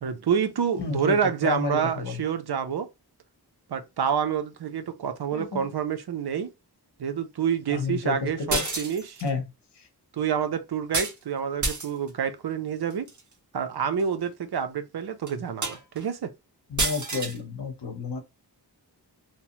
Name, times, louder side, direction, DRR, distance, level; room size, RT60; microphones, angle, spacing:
voice 1, 0.0-2.9 3.7-6.5 7.0-9.2 10.1-13.1 13.5-16.3, right 7 dB, 65° right, 0.6 m, -28 dB
voice 2, 0.8-1.2 1.4-2.2 5.3-5.7 7.7-8.6 9.2-9.4 9.8-9.9 16.7-18.2, left 4 dB, 80° left, 0.8 m, -30 dB
sound 1, 8.5-9.3 10.9-11.2 11.6-12.1 12.9-13.2 14.0-14.1 14.5-14.6 15.3-15.4 15.6-16.1 16.8-17.4, right 3 dB, 45° right, 0.9 m, -29 dB
2.9 x 2.0 x 2.9 m
wide cardioid pair, 80°, 41 cm